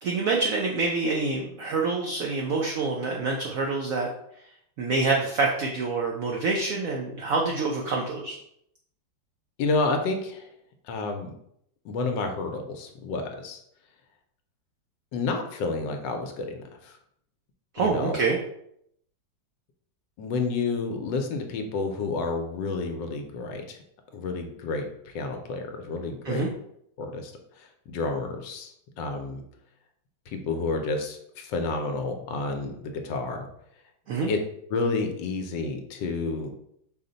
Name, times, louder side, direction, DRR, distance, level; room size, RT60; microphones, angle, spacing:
voice 1, 0.0-4.1 4.8-8.4 17.7-18.4 26.2-26.5 34.1-34.3, right 3 dB, 80° right, 0 dB, 0.7 m, -26 dB
voice 2, 9.6-10.5 10.8-11.3 11.8-13.6 15.1-17.0 17.8-18.2 20.2-23.8 24.1-26.4 27.0-29.4 30.3-33.5 34.3-34.4 34.7-36.5, left 3 dB, 75° left, 5 dB, 1.2 m, -30 dB
5.2 x 2.1 x 3.8 m, 0.73 s
omnidirectional pair, 2.1 m